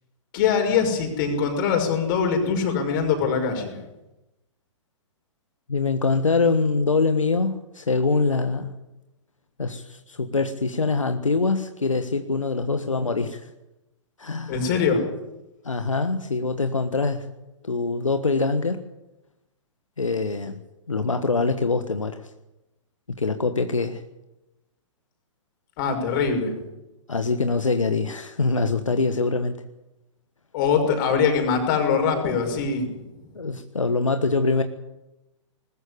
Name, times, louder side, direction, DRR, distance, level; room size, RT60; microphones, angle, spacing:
voice 1, 0.3-3.7 14.5-15.0 25.8-26.5 30.5-32.9, left 6 dB, 40° left, 4 dB, 5.8 m, -22 dB
voice 2, 5.7-8.8 9.6-13.5 14.2-14.7 15.6-17.3 17.6-18.8 20.0-20.6 20.9-22.3 23.1-24.0 27.1-29.6 33.3-34.6, left 3 dB, 80° left, 8 dB, 1.5 m, -24 dB
20.5 x 14.0 x 10.0 m, 0.98 s
figure-of-eight pair, 115°, 16 cm